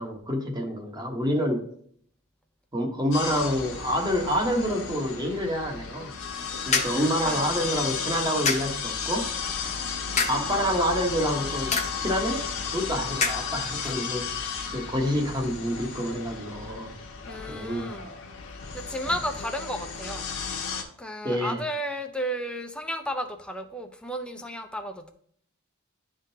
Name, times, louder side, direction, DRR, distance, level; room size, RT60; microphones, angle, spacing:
voice 1, 0.0-1.6 2.7-6.1 6.6-9.3 10.3-12.4 12.7-14.5 14.7-16.9 17.5-17.9 21.2-21.6, equal, 20° right, 1 dB, 1.2 m, -27 dB
sound 1, 3.1-20.8, left 6 dB, 65° left, 1.1 m, -34 dB
sound 2, 6.2-15.6, left 5 dB, 35° left, 0.9 m, -34 dB
voice 2, 6.9-7.5 17.2-18.1 18.7-20.3 21.0-25.1, equal, 5° left, 5 dB, 0.6 m, -33 dB
11.0 x 3.7 x 2.8 m, 0.63 s
head